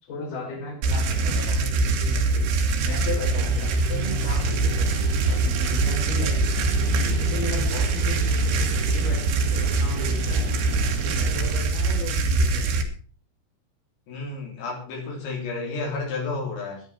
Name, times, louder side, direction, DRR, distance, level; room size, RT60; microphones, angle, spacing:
voice 1, 0.0-2.5 2.8-6.6 7.0-10.5 11.0-12.7, left 2 dB, 50° left, 1 dB, 6.0 m, -36 dB
sound 1, 0.8-12.8, right 3 dB, 85° right, 4.5 m, -23 dB
Guitar, 3.0-11.6, right 2 dB, 25° right, 2.5 m, -36 dB
voice 2, 14.1-16.8, left 3 dB, 75° left, 0 dB, 5.9 m, -31 dB
14.0 x 11.0 x 6.1 m, 0.41 s
omnidirectional pair, 5.2 m